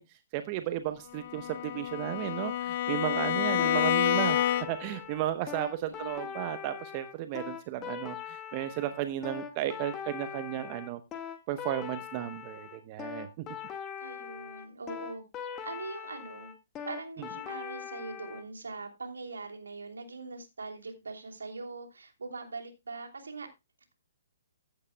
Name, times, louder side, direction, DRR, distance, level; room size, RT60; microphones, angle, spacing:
voice 1, 0.0-11.0 11.5-13.5 17.2-17.3, right 13 dB, 35° right, 10 dB, 0.9 m, -34 dB
Bowed string instrument, 1.1-5.0, left 11 dB, 45° left, 0.6 m, -29 dB
sound 1, 3.6-18.4, left 8 dB, 20° left, 1.7 m, -41 dB
voice 2, 5.8-6.4 14.0-15.2 15.6-16.5 16.9-23.5, right 3 dB, 75° right, 4 dB, 3.0 m, -42 dB
15.0 x 9.8 x 2.2 m, 0.24 s
figure-of-eight pair, 130°, 0 cm